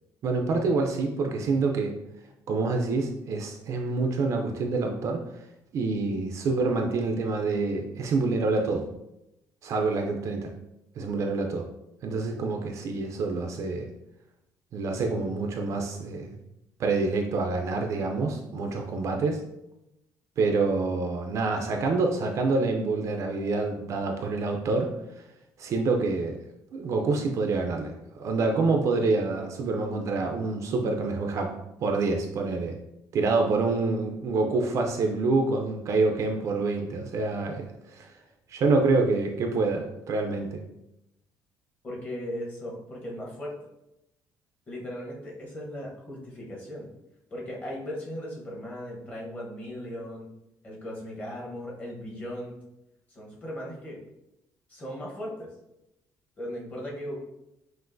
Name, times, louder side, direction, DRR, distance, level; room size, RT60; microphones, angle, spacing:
voice 1, 0.2-2.0 2.5-5.2 5.7-8.8 9.6-10.5 11.0-11.6 12.0-13.9 14.7-16.4 16.8-19.4 20.4-24.9 25.6-26.3 26.7-31.5 31.8-32.7 33.1-37.6 37.9-38.1 38.5-40.6, right 3 dB, 45° right, 3 dB, 0.4 m, -27 dB
voice 2, 41.8-43.6 44.7-46.9 47.3-50.3 50.6-52.6 53.1-54.0 54.7-55.5 56.4-57.2, equal, 20° left, -4 dB, 1.0 m, -37 dB
5.9 x 2.5 x 2.5 m, 0.88 s
cardioid pair, 175°, 7 cm